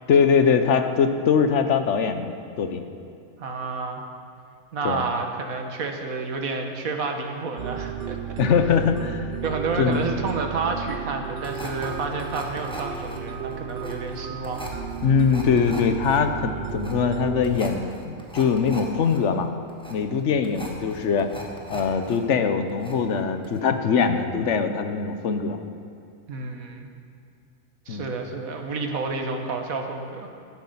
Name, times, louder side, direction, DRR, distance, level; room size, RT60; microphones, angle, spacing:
voice 1, 0.1-2.8 4.8-5.0 8.4-9.2 9.8-10.0 15.0-19.5 19.9-21.3 21.7-25.6 27.9-28.1, left 6 dB, 60° left, 8 dB, 1.1 m, -22 dB
voice 2, 3.4-4.0 4.7-8.2 9.4-14.6 26.3-26.9 27.9-30.3, right 4 dB, 90° right, 3 dB, 1.7 m, -30 dB
sound 1, 7.6-17.6, right 8 dB, 55° right, 0.7 m, -34 dB
sound 2, 11.4-22.2 22.5-23.2 23.4-23.6, equal, 5° left, 1.4 m, -39 dB
12.0 x 10.5 x 5.6 m, 2.6 s
omnidirectional pair, 1.4 m